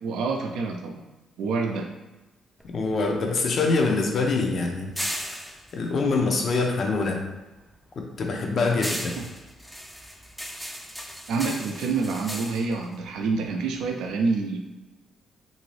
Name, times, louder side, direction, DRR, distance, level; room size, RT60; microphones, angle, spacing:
voice 1, 0.0-1.0 1.4-1.9 9.2-9.3 11.3-14.6, right 4 dB, 85° right, 3 dB, 0.4 m, -27 dB
sound 1, 2.6-7.1 7.4-13.9, equal, ahead, 0.4 m, -37 dB
voice 2, 2.7-4.9 5.7-7.2 8.0-9.2, left 3 dB, 55° left, 2 dB, 0.6 m, -24 dB
2.8 x 2.6 x 3.1 m, 1.1 s
cardioid pair, 90°, 0 cm